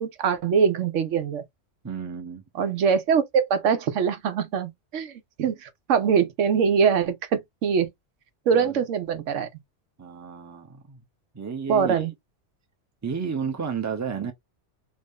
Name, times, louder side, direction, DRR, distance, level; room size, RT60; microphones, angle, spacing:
voice 1, 0.0-1.4 2.6-5.1 5.4-7.9 8.5-9.5 11.7-12.1, right 6 dB, 85° right, 1.1 m, -23 dB
voice 2, 1.8-2.4 8.5-8.8 10.0-11.0 11.3-12.1 13.0-14.3, right 6 dB, 20° right, 0.6 m, -32 dB
2.6 x 2.6 x 3.5 m
omnidirectional pair, 1.2 m